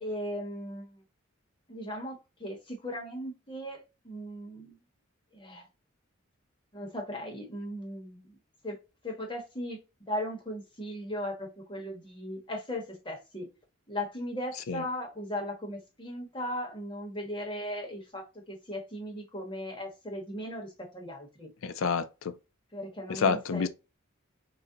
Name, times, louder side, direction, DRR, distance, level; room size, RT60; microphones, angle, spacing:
voice 1, 0.0-1.0 1.7-4.8 5.3-5.7 6.7-8.4 8.6-8.8 9.0-9.8 10.1-13.5 13.9-21.5 22.7-23.7, equal, 25° left, 1.1 m, -37 dB
voice 2, 21.6-22.3 23.1-23.7, left 5 dB, 75° left, 0.4 m, -28 dB
4.1 x 2.2 x 3.8 m
head